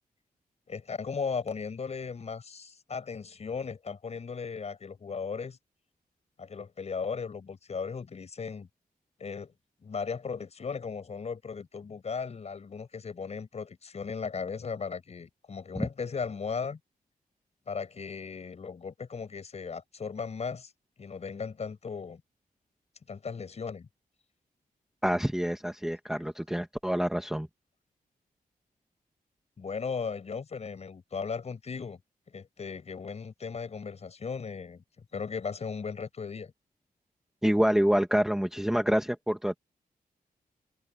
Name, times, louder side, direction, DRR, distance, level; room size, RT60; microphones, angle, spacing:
voice 1, 0.7-5.6 6.4-8.7 9.2-9.5 9.8-16.8 17.7-20.7 21.0-22.2 23.1-23.9 29.6-32.0 32.3-34.8 35.1-36.5, left 5 dB, 45° left, 6.4 m, -36 dB
voice 2, 25.0-27.5 37.4-39.5, equal, 5° right, 1.3 m, -27 dB
wide cardioid pair, 170°, 16 cm